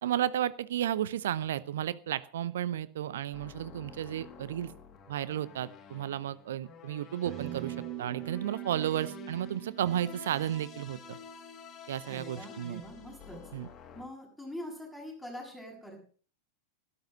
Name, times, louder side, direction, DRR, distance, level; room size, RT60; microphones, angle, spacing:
voice 1, 0.0-4.7 5.1-11.2 11.9-12.8 13.5-13.7, right 11 dB, 60° right, 17 dB, 0.8 m, -33 dB
sound 1, 3.3-14.1, left 7 dB, 30° left, 2.3 m, -50 dB
sound 2, 7.3-11.9, right 14 dB, 45° right, 1.7 m, -43 dB
voice 2, 12.1-13.4 13.9-16.0, equal, 5° right, 0 dB, 7.4 m, -44 dB
13.0 x 13.0 x 5.5 m, 0.42 s
figure-of-eight pair, 90°, 0 cm